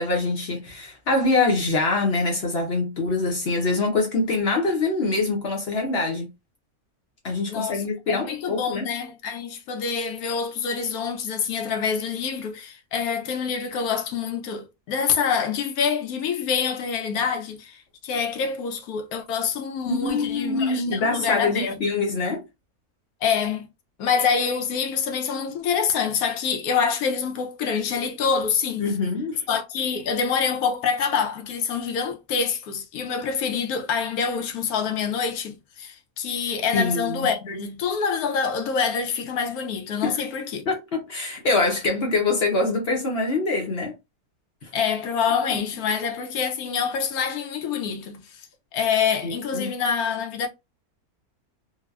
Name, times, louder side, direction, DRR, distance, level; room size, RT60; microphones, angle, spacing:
voice 1, 0.0-6.3 7.2-8.9 19.9-22.4 28.8-29.4 36.7-37.3 40.0-40.2 40.7-43.9 45.5-45.6 49.2-49.7, left 3 dB, 55° left, 0.8 m, -24 dB
voice 2, 7.5-7.8 8.1-21.9 23.2-23.7 24.0-28.9 29.5-40.6 44.7-48.5 48.7-50.5, left 6 dB, 80° left, 1.1 m, -26 dB
3.3 x 2.0 x 2.3 m
omnidirectional pair, 1.5 m